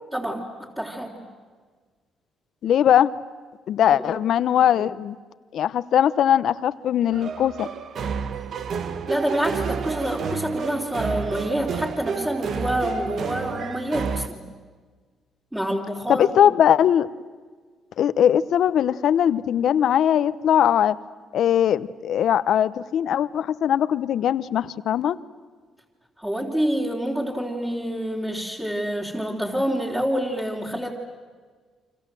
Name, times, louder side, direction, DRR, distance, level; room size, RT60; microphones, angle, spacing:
voice 1, 0.1-0.4 0.8-1.2 3.9-4.1 9.1-14.5 15.5-16.3 26.2-30.9, equal, 15° right, -4 dB, 3.6 m, -27 dB
voice 2, 2.6-3.1 3.7-5.2 5.5-7.7 16.1-17.1 18.0-21.0 21.3-25.2, left 10 dB, 70° left, 16 dB, 0.9 m, -20 dB
sound 1, 7.1-14.3, right 6 dB, 60° right, 1.2 m, -30 dB
30.0 x 25.5 x 7.7 m, 1.5 s
cardioid pair, 90°, 0 cm